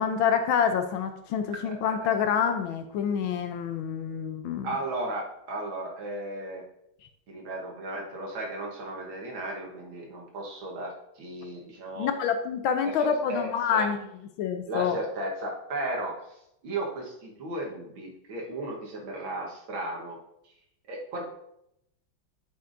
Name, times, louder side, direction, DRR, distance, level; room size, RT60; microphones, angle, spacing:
voice 1, 0.0-4.7 12.0-14.0 14.4-15.0, left 7 dB, 75° left, 7 dB, 1.4 m, -27 dB
voice 2, 1.7-2.0 4.6-6.6 7.3-12.1 12.8-13.9 14.7-16.2 16.6-20.2 20.9-21.2, right 2 dB, 65° right, -1 dB, 2.1 m, -35 dB
9.1 x 6.9 x 2.6 m, 0.79 s
omnidirectional pair, 2.4 m